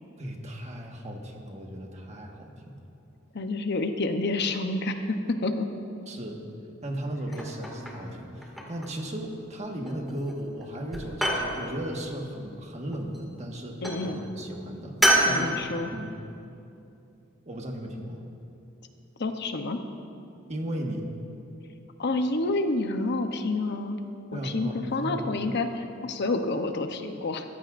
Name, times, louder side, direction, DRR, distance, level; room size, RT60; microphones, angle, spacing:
voice 1, 0.2-2.8 6.1-6.4 6.8-15.0 15.2-15.6 15.9-16.1 17.4-18.2 20.5-21.0 24.3-25.3, right 1 dB, 35° right, 1 dB, 1.5 m, -36 dB
voice 2, 3.3-5.7 13.8-14.2 15.2-15.9 19.2-19.8 22.0-24.0 24.3-27.4, left 2 dB, 55° left, 6 dB, 0.8 m, -29 dB
sound 1, 7.3-8.1 8.4-9.0 9.8-10.3 10.6-11.5 12.9-13.4 13.8-14.1 15.0-15.3, right 1 dB, ahead, 2.1 m, -26 dB
23.0 x 15.0 x 2.6 m, 2.7 s
head